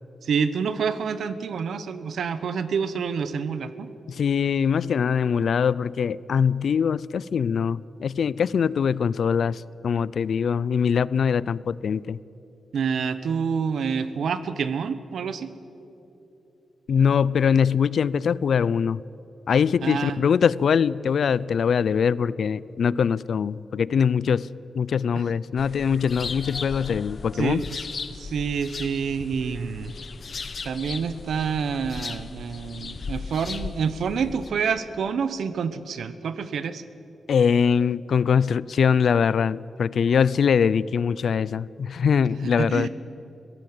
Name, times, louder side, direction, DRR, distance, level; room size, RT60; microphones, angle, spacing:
voice 1, 0.2-3.9 12.7-15.5 19.8-20.2 25.2-25.3 27.3-29.9 30.6-36.8 42.6-42.9, right 6 dB, 80° right, 13 dB, 1.0 m, -28 dB
voice 2, 4.1-12.2 16.9-19.0 19.5-24.5 24.7-27.6 37.3-42.9, left 7 dB, 65° left, 21 dB, 0.4 m, -22 dB
sound 1, 25.6-34.5, left 5 dB, 45° left, 1.0 m, -37 dB
22.5 x 16.5 x 7.8 m, 3.0 s
wide cardioid pair, 135°, 0 cm